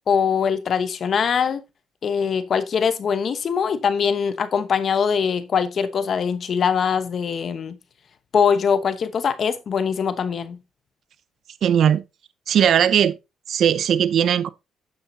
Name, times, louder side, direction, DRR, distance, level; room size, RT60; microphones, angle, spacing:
voice 1, 0.1-1.6 2.0-7.8 8.3-10.6, left 6 dB, 55° left, 1.0 m, -22 dB
voice 2, 11.6-12.0 12.5-13.1 13.5-14.5, right 9 dB, 65° right, 0.6 m, -18 dB
8.9 x 7.3 x 2.7 m
cardioid pair, 90°, 0 cm